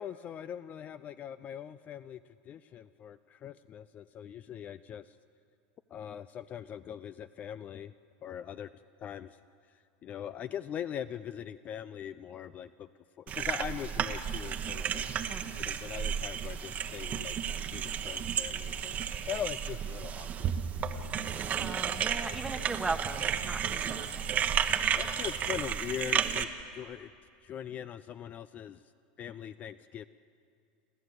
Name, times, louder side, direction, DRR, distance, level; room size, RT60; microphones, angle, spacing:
voice 1, 0.0-5.2 5.9-7.9 8.2-8.7 9.0-9.4 10.0-15.1 15.6-17.4 17.7-19.0 19.3-21.3 24.9-27.1 27.4-28.8 29.2-30.1, left 9 dB, 35° left, 14 dB, 0.4 m, -41 dB
sound 1, 13.3-26.4, right 8 dB, 35° right, 1.1 m, -33 dB
voice 2, 21.6-24.4, right 3 dB, 10° right, 8 dB, 1.2 m, -38 dB
28.5 x 13.0 x 8.0 m, 2.5 s
supercardioid pair, 125°, 5 cm